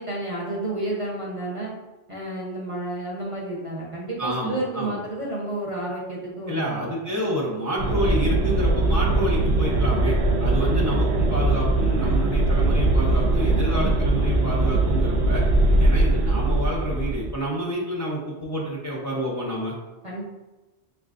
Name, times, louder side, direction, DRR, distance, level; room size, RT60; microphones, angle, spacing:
voice 1, 0.0-1.7 2.1-6.8 10.5-10.8 13.7-13.9 15.7-15.8 20.0-20.2, right 1 dB, 35° right, -5 dB, 0.8 m, -31 dB
voice 2, 4.2-5.0 6.5-15.4 15.8-19.8, equal, 20° left, -6 dB, 0.7 m, -29 dB
sound 1, 7.8-17.4, right 2 dB, 75° right, 0.8 m, -21 dB
6.3 x 2.4 x 2.5 m, 1.1 s
omnidirectional pair, 1.1 m